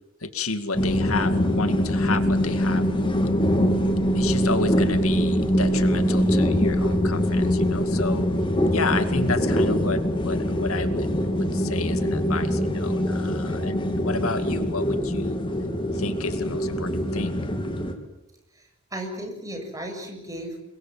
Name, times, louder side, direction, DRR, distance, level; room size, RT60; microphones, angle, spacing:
voice 1, 0.2-2.8 4.2-8.3 8.7-11.1 11.4-15.4 16.0-17.4, left 3 dB, 85° left, 9 dB, 2.2 m, -31 dB
sound 1, 0.8-17.9, equal, 25° left, 2.8 m, -23 dB
voice 2, 18.5-20.6, right 1 dB, 15° right, 3 dB, 6.9 m, -35 dB
29.0 x 22.5 x 7.5 m, 0.92 s
head